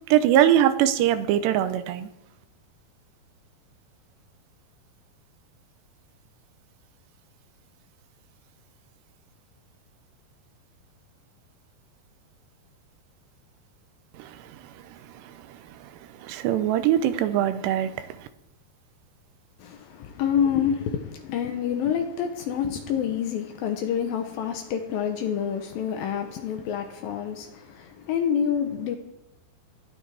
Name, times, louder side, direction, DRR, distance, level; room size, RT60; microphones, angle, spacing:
voice 1, 0.1-2.1 14.1-15.9 16.2-18.3, right 11 dB, 85° right, 2.9 m, -23 dB
voice 2, 19.6-29.0, left 8 dB, 75° left, 2.4 m, -27 dB
19.0 x 12.0 x 3.5 m
omnidirectional pair, 4.8 m